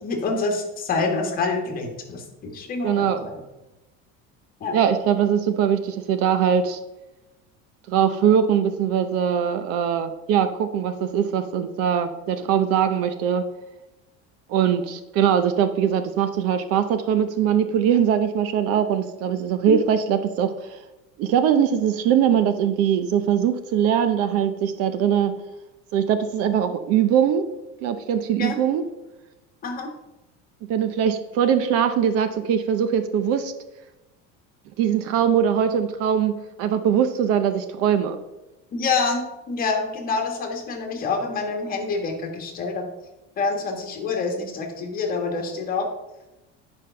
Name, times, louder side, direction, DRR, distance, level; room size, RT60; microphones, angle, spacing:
voice 1, 0.0-3.4 4.6-4.7 19.7-19.8 28.4-28.6 29.6-29.9 38.7-42.8 43.4-45.9, left 4 dB, 30° left, 2 dB, 1.6 m, -27 dB
voice 2, 2.8-3.3 4.7-6.8 7.9-13.4 14.5-20.8 21.2-25.3 25.9-27.4 27.8-28.8 30.7-33.5 34.8-38.2, right 8 dB, 50° right, 10 dB, 0.7 m, -21 dB
9.7 x 5.3 x 5.6 m, 1.0 s
cardioid pair, 175°, 30 cm